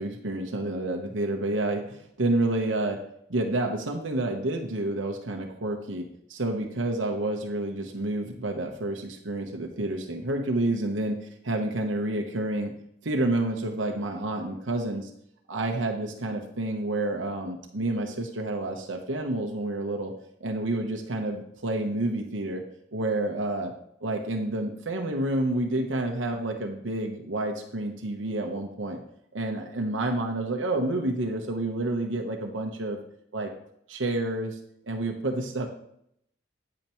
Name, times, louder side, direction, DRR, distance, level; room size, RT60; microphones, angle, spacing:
voice 1, 0.0-3.0 3.3-12.7 13.0-15.1 15.5-20.1 20.4-22.6 22.9-23.7 24.0-29.0 29.3-33.0 33.3-33.5 33.9-34.6 34.9-35.7, right 2 dB, 85° right, 2 dB, 1.1 m, -29 dB
9.1 x 8.9 x 3.1 m, 0.73 s
head